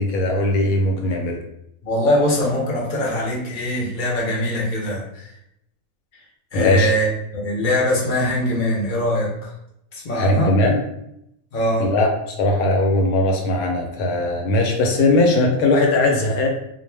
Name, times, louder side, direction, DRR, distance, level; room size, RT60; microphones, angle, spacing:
voice 1, 0.0-1.4 6.5-6.9 10.2-10.8 11.8-16.5, left 2 dB, 85° left, 2 dB, 1.1 m, -19 dB
voice 2, 1.8-5.3 6.5-9.3 9.9-10.6 11.5-11.9, left 1 dB, 50° left, -4 dB, 0.6 m, -22 dB
2.4 x 2.1 x 3.2 m, 0.79 s
omnidirectional pair, 1.5 m